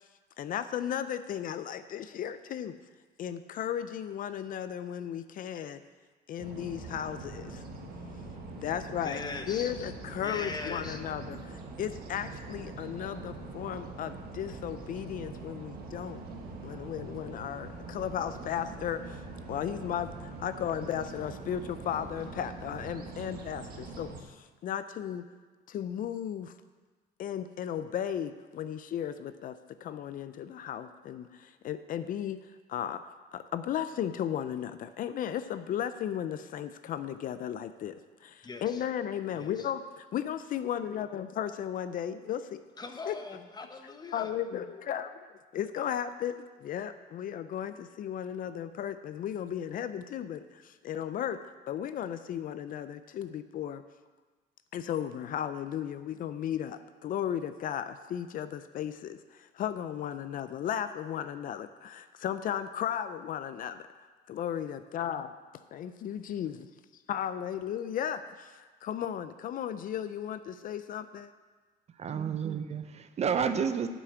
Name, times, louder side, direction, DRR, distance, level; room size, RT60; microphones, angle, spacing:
voice 1, 0.4-2.8 3.2-5.8 6.3-7.6 8.5-9.2 9.5-16.2 16.6-19.2 19.5-25.2 25.7-26.5 27.2-33.0 33.3-39.8 40.1-42.6 43.1-43.2 44.1-53.8 54.7-63.8 64.3-65.3 65.7-66.7 67.1-71.3, left 9 dB, 55° left, 11 dB, 0.5 m, -35 dB
sound 1, 6.4-24.2, right 3 dB, 65° right, 1.5 m, -43 dB
voice 2, 9.0-9.8 10.1-11.1 11.6-11.8 38.4-38.9 39.3-39.7 42.8-44.4, left 3 dB, 25° left, 6 dB, 1.0 m, -41 dB
voice 3, 71.9-73.9, right 7 dB, 40° right, 10 dB, 0.6 m, -30 dB
7.8 x 6.2 x 7.9 m, 1.3 s
cardioid pair, 110°, 17 cm